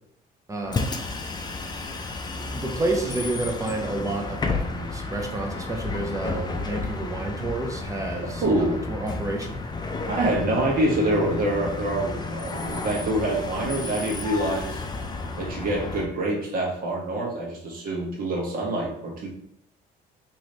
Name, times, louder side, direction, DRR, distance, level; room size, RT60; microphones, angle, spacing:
voice 1, 0.5-0.9 2.4-9.6, right 2 dB, 20° right, 3 dB, 0.7 m, -30 dB
Bus, 0.6-16.1, left 3 dB, 25° left, 0.5 m, -32 dB
voice 2, 8.2-8.8 10.1-14.8 15.4-19.3, right 1 dB, 60° right, -1 dB, 1.4 m, -26 dB
3.2 x 3.0 x 4.0 m, 0.75 s
cardioid pair, 110°, 17 cm